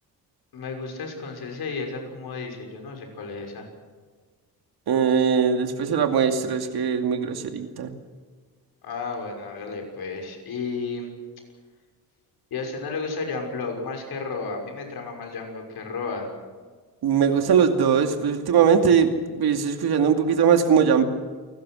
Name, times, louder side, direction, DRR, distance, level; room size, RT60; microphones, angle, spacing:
voice 1, 0.5-3.7 8.8-11.1 12.5-16.3, left 4 dB, 75° left, 2 dB, 6.2 m, -32 dB
voice 2, 4.9-7.9 17.0-19.1 19.4-21.0, right 7 dB, 75° right, 5 dB, 2.5 m, -20 dB
29.0 x 19.5 x 6.4 m, 1.5 s
wide cardioid pair, 150°, 38 cm